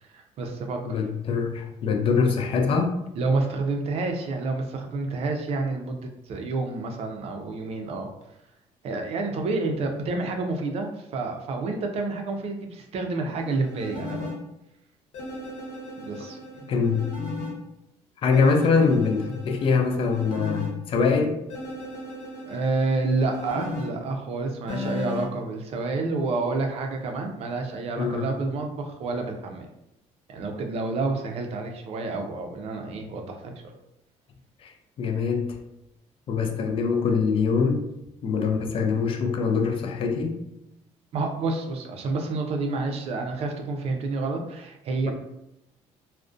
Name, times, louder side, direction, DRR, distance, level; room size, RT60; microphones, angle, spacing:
voice 1, 0.0-1.0 3.2-6.0 6.3-8.1 8.8-14.3 16.0-16.7 22.5-29.7 30.3-33.8 36.4-36.5 41.1-45.1, right 3 dB, 50° right, 3 dB, 0.4 m, -29 dB
voice 2, 0.9-2.9 16.7-17.1 18.2-21.4 28.0-28.3 34.6-34.7 35.0-35.6 36.3-37.8 38.2-40.4, left 5 dB, 45° left, 4 dB, 0.4 m, -23 dB
sound 1, 13.4-14.3 15.1-17.5 18.3-20.7 21.5-23.9 24.7-25.3, left 2 dB, 80° left, 0.8 m, -36 dB
2.4 x 2.1 x 2.4 m, 0.85 s
cardioid pair, 130°, 13 cm